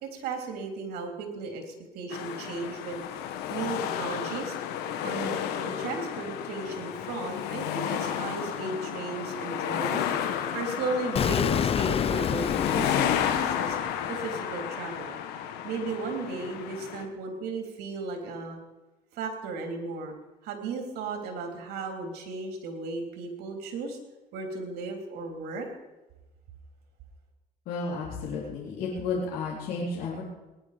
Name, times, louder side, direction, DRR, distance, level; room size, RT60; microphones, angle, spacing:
voice 1, 0.0-3.1 3.5-4.6 5.0-13.8 14.1-15.1 15.6-18.6 19.1-20.1 20.4-24.0 24.3-25.7, right 3 dB, 75° right, 3 dB, 3.4 m, -35 dB
sound 1, 2.1-17.1, left 9 dB, 85° left, 1.3 m, -32 dB
Explosion, 11.1-14.1, left 8 dB, 35° left, 0.5 m, -28 dB
voice 2, 27.7-30.2, left 4 dB, 70° left, -5 dB, 3.5 m, -32 dB
20.0 x 10.5 x 5.1 m, 1.1 s
cardioid pair, 100°, 16 cm